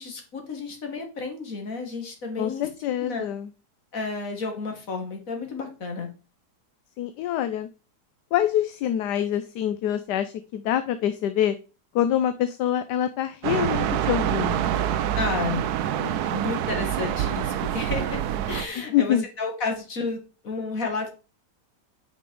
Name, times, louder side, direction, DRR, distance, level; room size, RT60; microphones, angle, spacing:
voice 1, 0.0-2.7 3.0-3.3 3.9-6.1 15.2-15.7 16.0-18.2 18.5-21.1, left 4 dB, 50° left, 4 dB, 2.3 m, -31 dB
voice 2, 2.4-3.5 7.0-7.7 8.3-11.6 11.9-14.8 18.8-19.3, left 10 dB, 75° left, 11 dB, 1.2 m, -25 dB
sound 1, 13.4-18.7, right 10 dB, 70° right, 1.1 m, -26 dB
8.6 x 5.5 x 4.6 m, 0.32 s
omnidirectional pair, 1.9 m